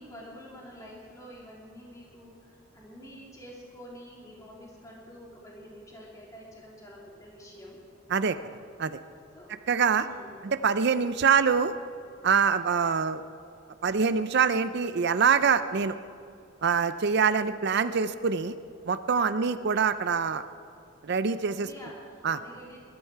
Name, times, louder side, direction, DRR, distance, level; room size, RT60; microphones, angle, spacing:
voice 1, 0.0-7.8 9.3-9.5 9.9-10.5 19.1-19.5 21.5-22.8, equal, 15° left, -4 dB, 2.9 m, -47 dB
voice 2, 9.7-10.0 10.4-11.7 12.2-13.2 13.8-15.9 16.6-18.5 18.9-20.5 21.0-21.7 22.2-22.4, right 6 dB, 60° right, 12 dB, 0.5 m, -24 dB
21.0 x 13.0 x 4.7 m, 2.5 s
head